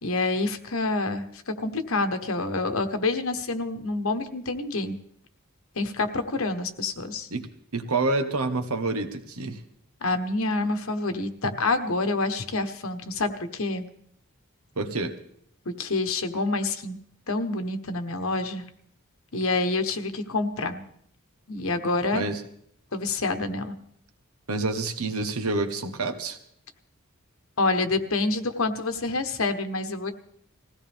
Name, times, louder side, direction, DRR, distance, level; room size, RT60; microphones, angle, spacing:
voice 1, 0.0-5.0 5.8-7.3 10.0-13.9 15.6-17.0 17.3-18.6 19.3-20.8 21.5-22.2 22.9-23.7 27.6-30.1, left 3 dB, 70° left, 7 dB, 1.2 m, -27 dB
voice 2, 7.3-9.6 11.4-11.5 14.8-15.1 22.1-22.4 24.5-26.4, right 3 dB, 90° right, 7 dB, 1.4 m, -28 dB
20.5 x 16.0 x 3.5 m, 0.68 s
head